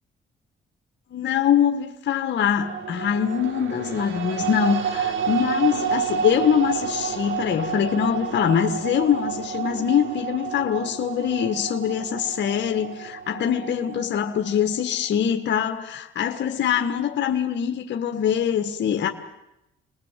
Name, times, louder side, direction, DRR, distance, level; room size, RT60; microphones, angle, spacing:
voice 1, 1.1-19.1, left 8 dB, 65° left, 1.6 m, -23 dB
sound 1, 2.6-14.8, right 7 dB, 80° right, 2.4 m, -30 dB
27.5 x 20.0 x 7.6 m
cardioid pair, 90°, 20 cm